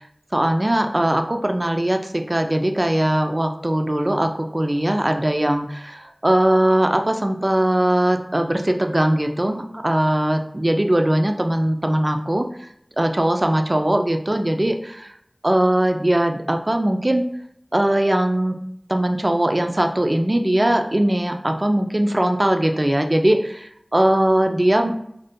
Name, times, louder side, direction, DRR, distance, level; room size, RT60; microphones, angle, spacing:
voice 1, 0.3-12.5 13.0-15.1 15.4-17.2 17.7-18.6 18.9-24.9, right 1 dB, 40° right, 5 dB, 0.3 m, -20 dB
2.5 x 2.2 x 3.5 m, 0.71 s
wide cardioid pair, 45°, 0 cm